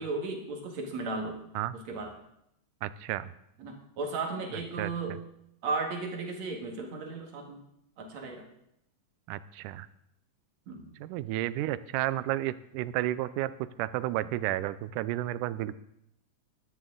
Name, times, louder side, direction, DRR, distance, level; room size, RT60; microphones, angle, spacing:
voice 1, 0.0-1.4 1.9-2.1 3.6-5.1 5.6-7.6 8.0-8.4 10.7-10.8, right 3 dB, 60° right, 2 dB, 3.0 m, -35 dB
voice 2, 2.8-3.3 4.5-5.2 9.3-9.9 11.0-15.7, right 14 dB, 85° right, 16 dB, 2.1 m, -32 dB
14.0 x 12.0 x 3.8 m, 0.79 s
omnidirectional pair, 3.6 m